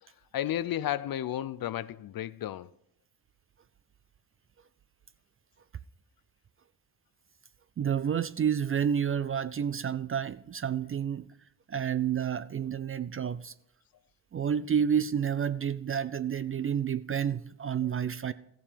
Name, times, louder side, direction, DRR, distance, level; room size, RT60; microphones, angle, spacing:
voice 1, 0.3-2.7, left 12 dB, 55° left, 0.5 m, -32 dB
voice 2, 7.8-11.3 11.7-13.5 14.3-18.3, right 8 dB, 30° right, 0.4 m, -29 dB
14.5 x 7.3 x 5.1 m
cardioid pair, 95°, 45 cm